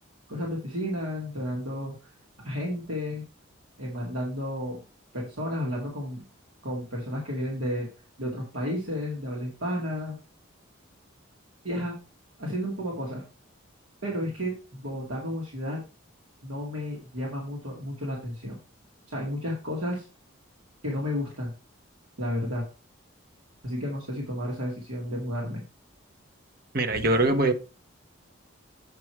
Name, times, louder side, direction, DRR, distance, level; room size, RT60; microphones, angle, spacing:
voice 1, 0.3-2.1 2.4-3.2 3.8-4.8 5.1-6.2 6.6-7.9 8.2-10.2 11.6-11.9 12.4-13.2 14.0-15.8 16.4-18.6 19.1-20.1 20.8-21.5 22.2-22.7 23.6-25.6, equal, 85° right, 2.3 m, -32 dB
voice 2, 26.7-27.5, right 2 dB, 45° right, 0.9 m, -22 dB
8.4 x 4.7 x 4.5 m
head